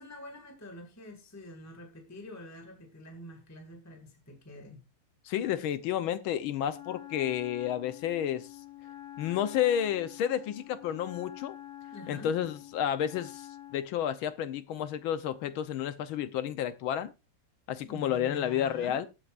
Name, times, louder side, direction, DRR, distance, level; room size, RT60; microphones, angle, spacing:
voice 1, 0.0-4.8 11.9-12.3 17.8-19.0, left 1 dB, 10° left, 1.7 m, -47 dB
voice 2, 5.2-8.5 9.2-11.6 12.1-17.1 17.7-19.1, left 10 dB, 75° left, 1.5 m, -31 dB
Wind instrument woodwind instrument, 6.7-13.9, left 13 dB, 45° left, 1.1 m, -47 dB
19.0 x 8.0 x 2.5 m
omnidirectional pair, 2.4 m